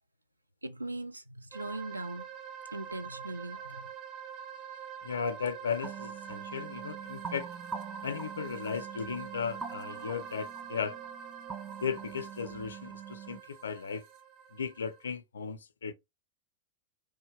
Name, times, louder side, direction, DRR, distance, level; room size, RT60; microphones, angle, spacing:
voice 1, 0.6-2.2 2.7-3.9, right 2 dB, 85° right, 0.3 m, -40 dB
sound 1, 1.5-15.1, right 8 dB, 50° right, 0.9 m, -45 dB
voice 2, 5.0-7.5 8.0-11.0 11.8-14.0 14.5-15.9, left 6 dB, 70° left, 0.4 m, -36 dB
sound 2, 5.8-13.4, right 6 dB, 25° right, 0.6 m, -44 dB
3.2 x 2.2 x 3.2 m
figure-of-eight pair, 90°, 0 cm